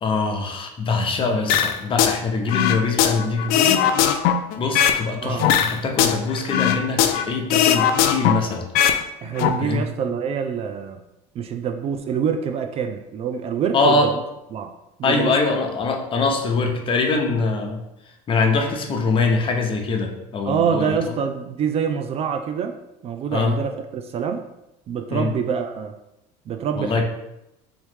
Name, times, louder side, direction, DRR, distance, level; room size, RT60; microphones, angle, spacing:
voice 1, 0.0-3.9 4.6-8.7 9.6-9.9 13.7-14.1 15.0-17.8 18.3-21.0 23.3-23.6 25.1-25.3 26.7-27.0, left 3 dB, 35° left, 2 dB, 0.7 m, -23 dB
sound 1, 1.5-2.2 2.5-5.0 5.4-7.2 7.5-9.0 9.3-9.5, left 9 dB, 70° left, 0.4 m, -19 dB
voice 2, 9.2-11.0 11.3-14.1 14.5-14.7 15.0-15.3 20.5-22.8 23.0-24.4 24.9-25.9 26.5-27.0, right 7 dB, 40° right, 6 dB, 0.3 m, -25 dB
3.6 x 3.1 x 3.4 m, 0.88 s
supercardioid pair, 110°, 16 cm